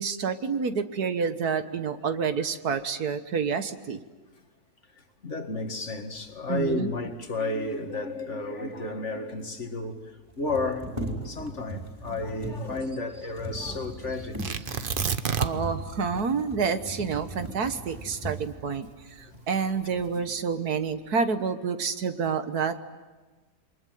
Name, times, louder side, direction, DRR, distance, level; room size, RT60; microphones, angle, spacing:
voice 1, 0.0-4.0 6.5-6.9 15.3-22.8, right 5 dB, 75° right, 1.9 m, -28 dB
voice 2, 4.9-10.9 11.2-15.2 19.2-19.5 20.0-20.3, left 2 dB, 50° left, 2.3 m, -33 dB
sound 1, 8.8-8.9 9.1-9.2 10.3-18.6 19.3-19.4 19.9-20.5 20.9-21.4, right 2 dB, 15° right, 4.5 m, -38 dB
Tearing, 14.4-15.8 16.1-16.2 16.7-19.1 19.8-20.2, right 6 dB, 40° right, 1.0 m, -30 dB
28.0 x 23.0 x 9.3 m
omnidirectional pair, 1.6 m